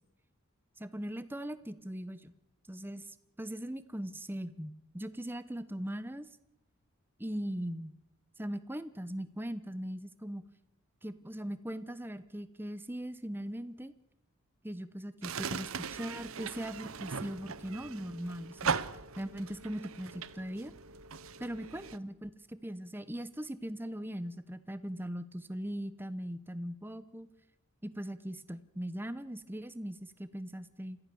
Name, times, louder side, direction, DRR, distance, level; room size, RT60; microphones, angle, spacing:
voice 1, 0.8-2.3 2.7-3.0 3.4-6.3 7.2-7.9 8.4-10.4 11.0-13.9 14.6-18.8 19.2-20.7 21.4-27.3 27.8-31.0, equal, 10° right, 13 dB, 0.9 m, -40 dB
sound 1, 15.2-22.0, right 6 dB, 75° right, 0.8 m, -39 dB
27.5 x 15.0 x 7.0 m, 0.84 s
head